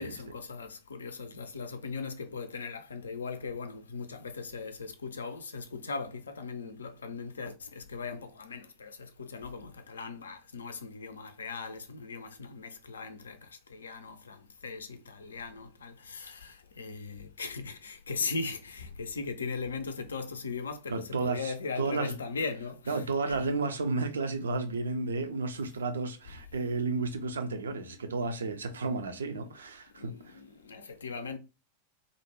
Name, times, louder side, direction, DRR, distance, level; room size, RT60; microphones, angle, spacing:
voice 1, 0.0-23.4 30.0-31.4, left 4 dB, 70° left, 0.4 m, -39 dB
voice 2, 20.9-22.2 22.9-30.4, right 3 dB, 70° right, 0.4 m, -32 dB
2.5 x 2.1 x 3.0 m
figure-of-eight pair, 90°, 0 cm